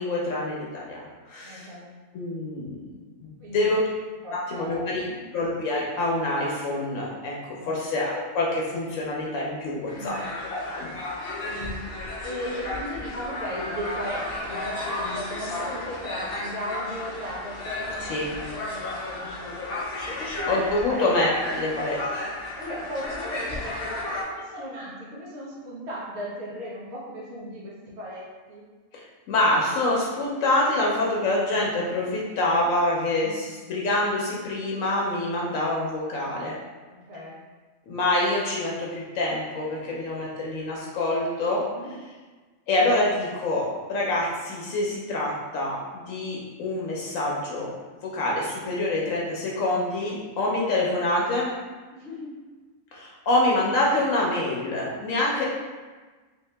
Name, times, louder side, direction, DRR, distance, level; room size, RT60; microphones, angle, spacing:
voice 1, 0.0-1.7 2.1-2.8 3.2-3.8 4.3-5.0 5.3-10.2 10.5-10.9 18.0-18.3 20.5-22.2 28.9-36.5 37.9-41.7 42.7-47.7 48.0-51.5 52.9-55.4, left 2 dB, 80° left, -3 dB, 1.0 m, -26 dB
voice 2, 1.4-1.9 3.4-3.7 4.2-5.0 7.5-7.8 9.9-10.2 11.4-19.8 20.0-21.1 21.4-21.5 22.5-28.6 33.1-33.4 36.9-37.4 41.7-41.9 51.9-52.4, equal, 60° right, -6 dB, 1.1 m, -37 dB
sound 1, 9.9-24.2, left 2 dB, 50° left, 0.9 m, -33 dB
3.5 x 2.7 x 3.3 m, 1.3 s
omnidirectional pair, 1.4 m